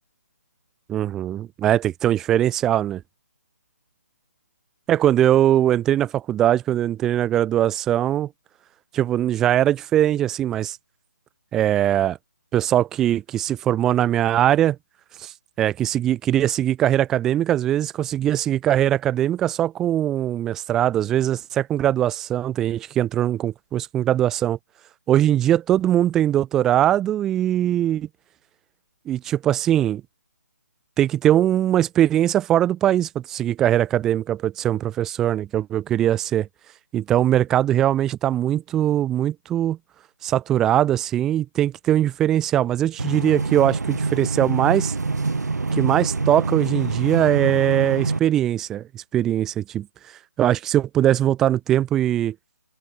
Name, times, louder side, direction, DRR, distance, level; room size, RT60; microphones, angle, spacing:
voice 1, 0.9-3.0 4.9-8.3 8.9-10.8 11.5-12.2 12.5-14.8 15.2-24.6 25.1-28.1 29.1-30.0 31.0-36.5 36.9-39.8 40.2-44.9 45.7-49.9 50.4-52.3, right 11 dB, 5° right, 0.6 m, -21 dB
sound 1, 43.0-48.2, right 3 dB, 80° right, 6.0 m, -25 dB
open air
hypercardioid pair, 175°, 9 cm